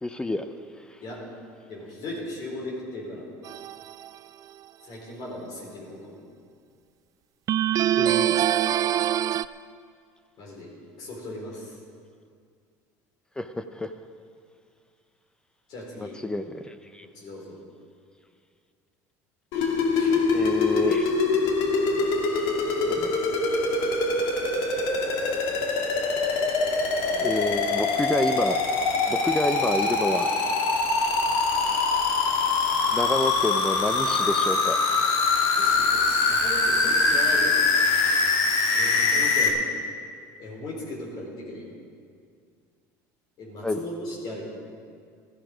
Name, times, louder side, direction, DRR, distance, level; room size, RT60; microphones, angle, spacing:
voice 1, 0.0-0.4 7.9-8.3 13.4-13.9 16.0-17.1 20.3-21.1 22.9-23.2 27.2-28.7 29.1-30.3 32.9-34.8 43.6-43.8, left 2 dB, 10° left, 9 dB, 0.6 m, -28 dB
voice 2, 1.7-3.3 4.8-6.2 10.4-10.7 11.0-11.8 15.7-16.2 17.1-17.6 19.9-20.2 26.9-27.5 35.4-37.5 38.7-39.6 40.4-41.7 43.4-44.4, left 1 dB, 55° left, -3 dB, 4.4 m, -38 dB
sound 1, 3.4-4.1 7.5-9.4, right 11 dB, 45° right, 0.4 m, -23 dB
sound 2, 19.5-39.5, left 3 dB, 75° left, 2.2 m, -23 dB
15.5 x 14.0 x 5.1 m, 2.2 s
supercardioid pair, 120°, 9 cm